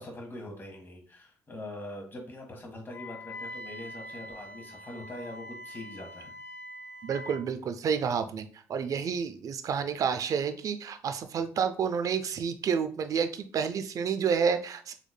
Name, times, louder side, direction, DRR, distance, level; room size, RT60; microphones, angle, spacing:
voice 1, 0.0-6.3, left 1 dB, 30° left, 1 dB, 1.5 m, -43 dB
Wind instrument woodwind instrument, 2.9-7.4, left 1 dB, 60° left, 1.4 m, -44 dB
voice 2, 7.0-14.9, right 6 dB, 55° right, 10 dB, 0.4 m, -29 dB
4.1 x 3.1 x 2.2 m, 0.41 s
supercardioid pair, 60°, 7 cm